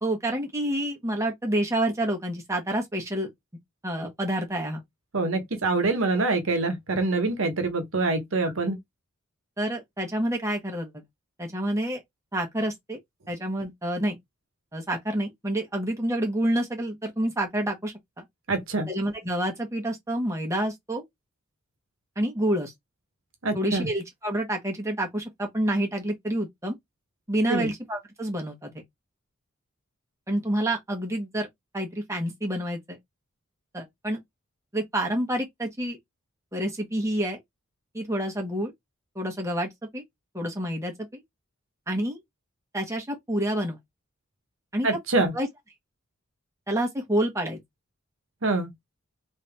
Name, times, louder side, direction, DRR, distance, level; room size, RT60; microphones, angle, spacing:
voice 1, 0.0-3.3 3.8-4.8 9.6-10.9 11.4-12.0 12.3-13.0 13.3-14.2 14.7-18.2 18.9-21.0 22.2-22.7 23.5-26.7 27.3-28.8 30.3-31.5 31.7-33.0 33.7-34.2 34.7-36.0 36.5-37.4 37.9-38.7 39.1-40.0 40.3-41.2 41.9-42.2 42.7-43.8 44.7-44.9 45.2-45.5 46.7-47.6, right 1 dB, 15° right, 1.3 m, -28 dB
voice 2, 5.1-8.8 18.5-18.9 23.4-23.9 27.5-27.7 44.8-45.3 48.4-48.7, right 3 dB, 75° right, 1.1 m, -25 dB
3.5 x 2.8 x 3.4 m
head